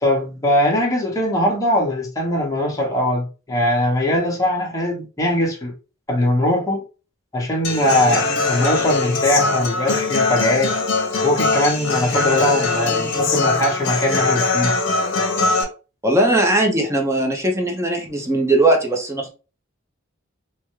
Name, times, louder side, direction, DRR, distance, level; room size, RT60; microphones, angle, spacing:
voice 1, 0.0-5.7 6.1-6.8 7.3-10.7 11.2-14.7, left 1 dB, 15° left, 0.9 m, -21 dB
Human voice / Acoustic guitar, 7.6-15.6, left 3 dB, 65° left, 0.8 m, -21 dB
voice 2, 16.0-19.3, right 1 dB, 15° right, 0.6 m, -19 dB
3.4 x 2.1 x 3.0 m
head